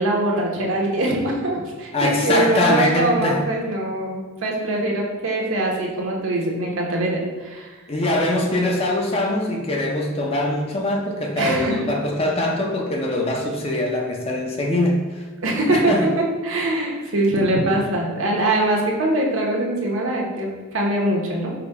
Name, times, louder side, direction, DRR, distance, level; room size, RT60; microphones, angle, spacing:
voice 1, 0.0-7.7 11.3-11.8 15.4-21.5, right 1 dB, 65° right, -1 dB, 0.8 m, -22 dB
voice 2, 1.9-3.5 7.9-15.2 15.7-16.1, left 1 dB, 25° left, 1 dB, 0.4 m, -22 dB
4.9 x 2.1 x 4.5 m, 1.4 s
head